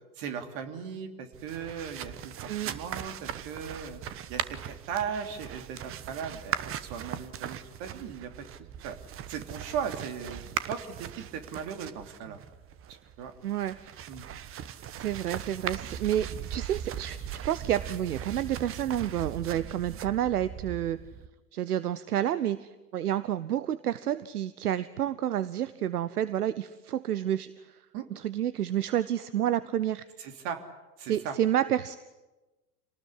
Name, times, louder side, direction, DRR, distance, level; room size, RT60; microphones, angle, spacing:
voice 1, 0.2-2.3 2.6-4.0 4.3-8.3 8.8-9.0 9.3-10.4 10.7-12.4 12.9-13.3 14.1-14.2 27.9-28.1 30.2-30.6 31.0-31.4, right 7 dB, 45° right, 6 dB, 3.3 m, -37 dB
sound 1, 1.3-21.3, right 10 dB, 25° right, 1.2 m, -39 dB
voice 2, 13.4-14.0 14.9-17.2 17.4-21.0 21.5-27.5 28.1-30.0 31.1-32.0, right 11 dB, 70° right, 15 dB, 1.0 m, -29 dB
27.5 x 19.0 x 9.8 m, 1.1 s
figure-of-eight pair, 90°, 48 cm